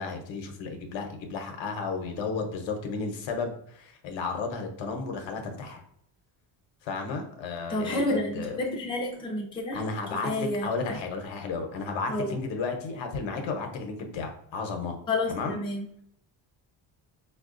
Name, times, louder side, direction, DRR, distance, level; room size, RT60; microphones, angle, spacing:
voice 1, 0.0-5.8 6.8-8.6 9.7-15.0 15.3-15.6, left 4 dB, 80° left, 4 dB, 0.8 m, -33 dB
voice 2, 7.7-9.8 10.2-11.0 12.1-12.3 15.1-15.8, left 2 dB, 10° left, -2 dB, 0.5 m, -30 dB
5.2 x 2.3 x 2.4 m, 0.70 s
cardioid pair, 175°, 45 cm